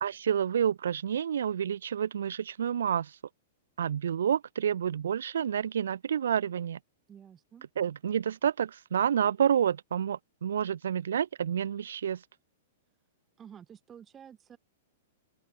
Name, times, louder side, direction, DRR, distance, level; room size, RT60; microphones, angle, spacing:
voice 1, 0.0-3.2 3.8-6.8 7.8-12.2, right 8 dB, 65° right, 0.4 m, -29 dB
voice 2, 7.1-7.7 13.4-14.6, right 8 dB, 20° right, 1.0 m, -51 dB
open air
figure-of-eight pair, 105°, 0 cm